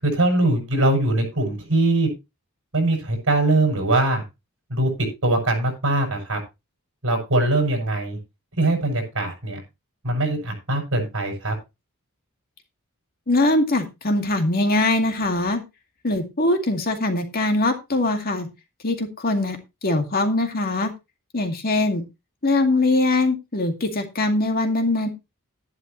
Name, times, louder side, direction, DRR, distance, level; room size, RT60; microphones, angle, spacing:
voice 1, 0.0-2.1 2.7-4.2 4.7-4.9 5.2-6.4 7.0-8.2 8.6-9.6 10.0-11.6, right 2 dB, 60° right, 3 dB, 6.9 m, -21 dB
voice 2, 13.3-15.6 16.0-18.5 18.8-19.6 19.8-20.9 21.3-22.0 22.4-25.1, left 2 dB, 45° left, 5 dB, 2.2 m, -22 dB
12.0 x 11.0 x 3.1 m, 0.25 s
head